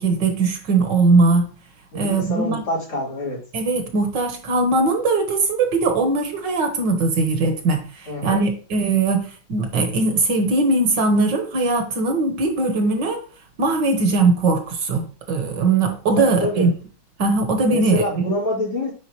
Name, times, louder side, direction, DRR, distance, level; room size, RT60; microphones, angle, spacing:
voice 1, 0.0-1.5 1.9-2.6 3.5-13.2 13.6-16.7 17.2-18.0, right 3 dB, 60° right, 4 dB, 1.8 m, -20 dB
voice 2, 1.9-3.4 8.1-8.5 16.2-16.7 17.7-18.9, left 1 dB, 90° left, -6 dB, 4.4 m, -26 dB
9.6 x 4.7 x 3.0 m, 0.38 s
omnidirectional pair, 2.3 m